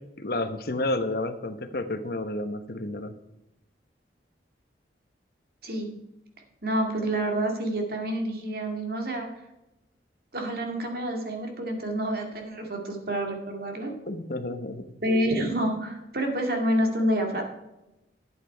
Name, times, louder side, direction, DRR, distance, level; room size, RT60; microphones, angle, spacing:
voice 1, 0.2-3.1 14.1-14.8, left 2 dB, 60° left, 9 dB, 1.0 m, -30 dB
voice 2, 5.6-5.9 6.6-9.3 10.3-14.0 15.0-17.4, right 1 dB, 60° right, 3 dB, 2.2 m, -28 dB
11.5 x 8.5 x 4.6 m, 0.93 s
head